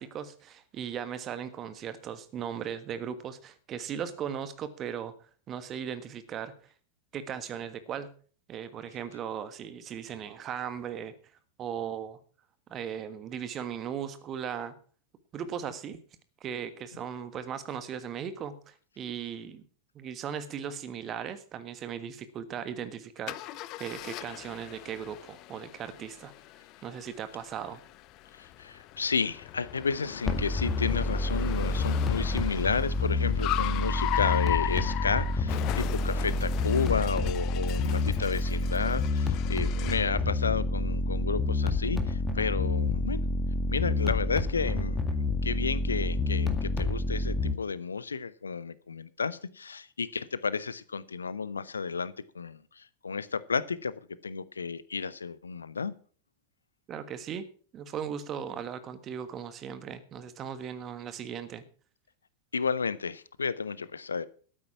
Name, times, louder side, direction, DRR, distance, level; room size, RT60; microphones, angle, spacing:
voice 1, 0.0-5.1 5.5-6.5 7.1-8.1 8.5-11.1 11.6-12.2 12.7-14.7 15.3-16.0 16.4-19.6 19.9-26.3 26.8-27.8 56.9-57.4 57.7-61.6, right 8 dB, 30° right, 13 dB, 1.5 m, -37 dB
Car, 23.3-40.2, left 15 dB, 40° left, 0.7 m, -38 dB
voice 2, 28.4-43.2 43.7-53.9 54.2-55.9 62.5-64.3, left 5 dB, 75° left, 18 dB, 0.7 m, -32 dB
sound 1, 30.2-47.5, left 2 dB, 15° left, 2.0 m, -28 dB
13.0 x 9.4 x 5.8 m, 0.42 s
figure-of-eight pair, 90°, 0 cm